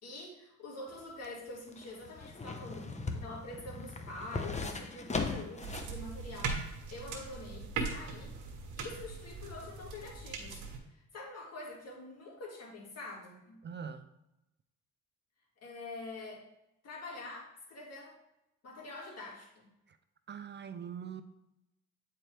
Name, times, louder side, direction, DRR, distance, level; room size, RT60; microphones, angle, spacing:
voice 1, 0.0-8.4 8.8-10.6 10.9-13.6 15.6-16.4 16.8-18.2 18.6-19.7, left 2 dB, 55° left, -2 dB, 2.1 m, -46 dB
sound 1, 0.9-6.0 6.3-6.4, left 3 dB, 25° left, 0.8 m, -39 dB
sound 2, 5.6-10.8, right 4 dB, 80° right, 1.4 m, -40 dB
voice 2, 13.6-14.1 19.9-20.0 20.3-21.2, right 7 dB, 35° right, 10 dB, 0.4 m, -42 dB
8.6 x 4.6 x 3.3 m, 0.89 s
cardioid pair, 90°, 30 cm